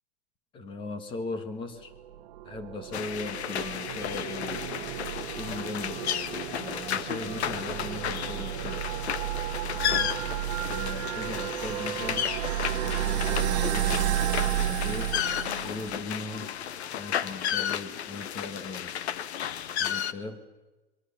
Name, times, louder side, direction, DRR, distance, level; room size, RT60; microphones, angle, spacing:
voice 1, 0.5-1.9 2.4-4.8 5.4-9.0 9.6-10.1 10.7-12.3 12.7-15.2 15.6-16.5 16.9-19.1 19.8-20.5, left 3 dB, 15° left, 10 dB, 1.7 m, -39 dB
sound 1, 1.9-16.1, right 12 dB, 40° right, 1.4 m, -32 dB
sound 2, 2.9-20.1, left 9 dB, 85° left, 1.4 m, -33 dB
26.5 x 23.5 x 7.2 m, 1.2 s
supercardioid pair, 175°, 32 cm